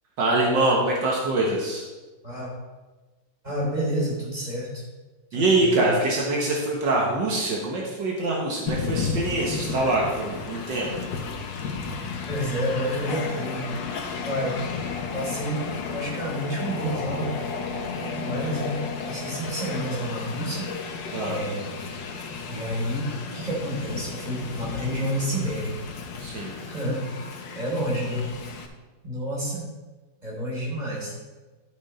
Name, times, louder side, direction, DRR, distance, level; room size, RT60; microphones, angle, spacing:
voice 1, 0.2-1.8 5.3-10.9 21.1-21.4 26.2-26.6, right 2 dB, 75° right, -2 dB, 2.0 m, -24 dB
voice 2, 3.4-4.8 5.3-5.8 12.3-13.7 14.2-14.6 15.1-17.3 18.0-20.7 21.3-21.7 22.5-25.8 26.7-27.1 27.6-28.3 29.0-29.7 30.2-31.1, equal, 20° right, -5 dB, 3.5 m, -29 dB
Train, 8.7-28.7, left 5 dB, 80° left, 1.6 m, -33 dB
12.5 x 5.6 x 4.4 m, 1.2 s
omnidirectional pair, 2.0 m